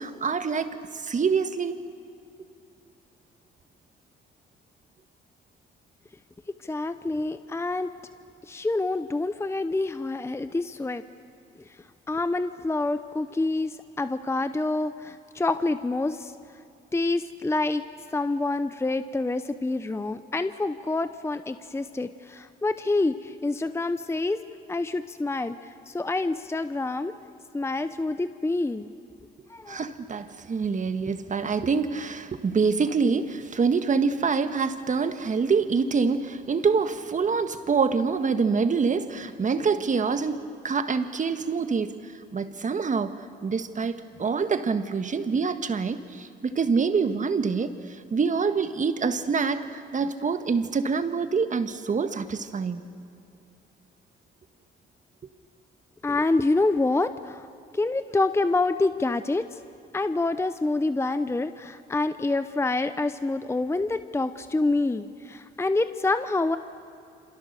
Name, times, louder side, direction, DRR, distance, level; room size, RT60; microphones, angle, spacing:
voice 1, 0.0-1.8 29.7-43.9 44.2-52.8, right 5 dB, 40° right, 9 dB, 1.6 m, -26 dB
voice 2, 6.7-7.9 8.5-11.0 12.1-13.7 14.0-16.3 16.9-17.8 18.1-24.4 24.7-25.5 25.9-27.1 27.5-28.9 29.5-29.8 56.0-57.4 57.8-59.4 59.9-66.6, left 2 dB, 15° left, 11 dB, 0.8 m, -27 dB
27.5 x 27.0 x 6.8 m, 2.6 s
cardioid pair, 90°, 20 cm